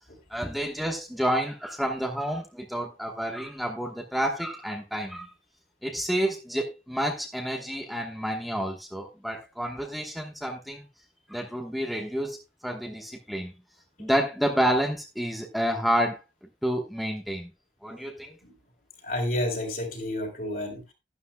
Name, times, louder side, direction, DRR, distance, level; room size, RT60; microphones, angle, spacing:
voice 1, 0.3-5.3 5.8-10.8 11.3-12.4 12.6-13.5 14.0-16.2 16.6-17.5 17.8-18.4, equal, ahead, 1.2 m, -29 dB
voice 2, 19.0-20.9, left 1 dB, 50° left, 3.8 m, -31 dB
12.5 x 12.0 x 2.2 m
head